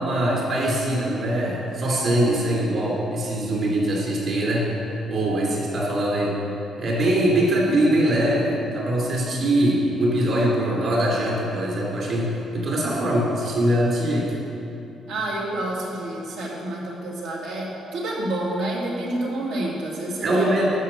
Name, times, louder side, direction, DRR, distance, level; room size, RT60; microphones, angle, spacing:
voice 1, 0.0-4.7 5.1-6.4 6.8-14.3 20.2-20.7, right 1 dB, 45° right, -4 dB, 2.8 m, -22 dB
voice 2, 15.1-20.5, right 1 dB, 90° right, -3 dB, 2.2 m, -29 dB
11.5 x 5.3 x 6.9 m, 2.8 s
cardioid pair, 175°, 0 cm